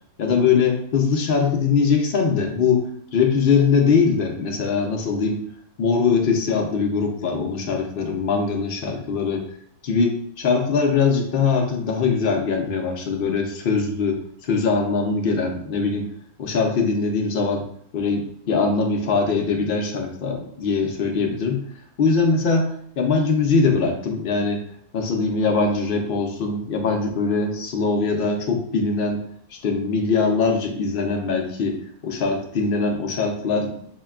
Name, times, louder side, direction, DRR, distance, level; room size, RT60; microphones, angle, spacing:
voice 1, 0.2-2.8 3.1-5.4 5.8-9.4 9.8-16.1 16.4-17.6 17.9-21.6 22.0-24.6 24.9-29.2 29.5-31.8 32.0-33.7, left 4 dB, 65° left, 2 dB, 0.5 m, -22 dB
6.3 x 2.2 x 2.3 m, 0.65 s
omnidirectional pair, 1.6 m